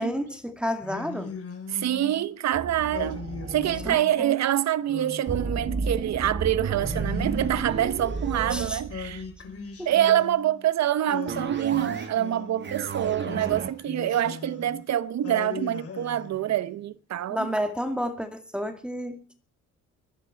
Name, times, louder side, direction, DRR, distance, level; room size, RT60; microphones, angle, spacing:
voice 1, 0.0-1.4 3.9-4.3 8.5-8.8 9.8-9.9 17.3-19.3, equal, 5° right, 2.0 m, -31 dB
Singing, 0.8-2.3 2.9-4.3 4.9-6.2 6.8-8.3 8.9-10.7 11.1-12.7 13.2-14.8 15.2-16.9, left 5 dB, 50° left, 3.8 m, -40 dB
voice 2, 1.7-3.2 3.5-9.2 9.8-17.5, right 12 dB, 65° right, 1.0 m, -26 dB
sound 1, 2.5-4.0 5.3-9.5 11.3-12.2 12.5-13.7, right 4 dB, 40° right, 2.0 m, -32 dB
23.0 x 10.0 x 4.6 m
cardioid pair, 90°, 30 cm